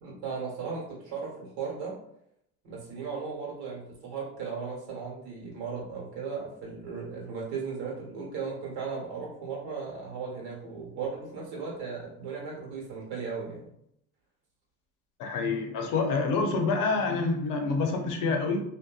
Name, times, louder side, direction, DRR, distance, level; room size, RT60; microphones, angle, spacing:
voice 1, 0.0-1.9 2.6-13.7, right 5 dB, 70° right, -3 dB, 1.3 m, -36 dB
voice 2, 15.2-18.6, left 4 dB, 55° left, 3 dB, 0.6 m, -27 dB
2.7 x 2.2 x 2.3 m, 0.75 s
supercardioid pair, 90°, 40 cm